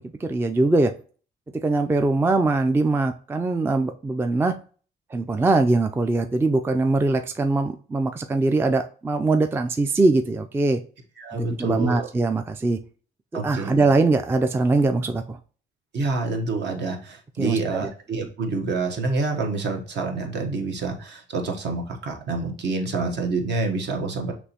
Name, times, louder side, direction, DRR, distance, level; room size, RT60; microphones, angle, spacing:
voice 1, 0.2-0.9 1.6-4.6 5.1-10.8 11.6-12.8 13.3-15.4 17.4-17.9, right 3 dB, 10° right, 7 dB, 0.3 m, -22 dB
voice 2, 11.2-12.1 13.3-13.9 15.9-24.3, right 3 dB, 60° right, 3 dB, 1.1 m, -27 dB
6.0 x 3.0 x 2.8 m, 0.40 s
cardioid pair, 90°, 20 cm